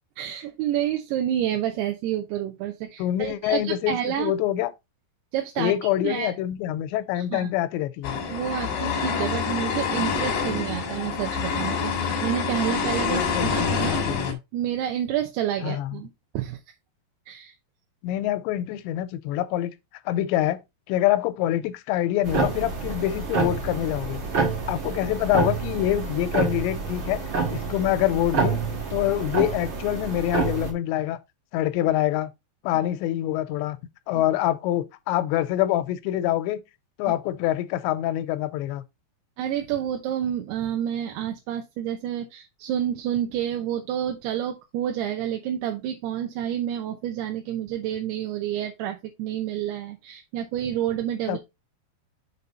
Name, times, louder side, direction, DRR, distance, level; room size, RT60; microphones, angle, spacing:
voice 1, 0.2-4.3 5.3-5.7 6.0-6.3 7.2-7.5 8.3-14.0 14.5-16.1 16.3-16.6 17.3-17.5 37.1-37.2 39.4-51.4, right 10 dB, 75° right, 2.7 m, -29 dB
voice 2, 3.0-4.7 5.6-8.2 13.1-14.4 15.6-16.0 18.0-19.7 20.1-20.6 20.9-24.2 24.7-27.2 27.5-31.2 31.5-32.3 32.6-33.8 34.1-36.6 37.0-38.8 51.3-51.4, left 13 dB, 90° left, 2.8 m, -25 dB
sound 1, 8.0-14.3, left 5 dB, 60° left, 2.5 m, -27 dB
sound 2, 22.2-30.7, right 4 dB, 45° right, 1.8 m, -28 dB
6.8 x 4.1 x 4.1 m
omnidirectional pair, 5.0 m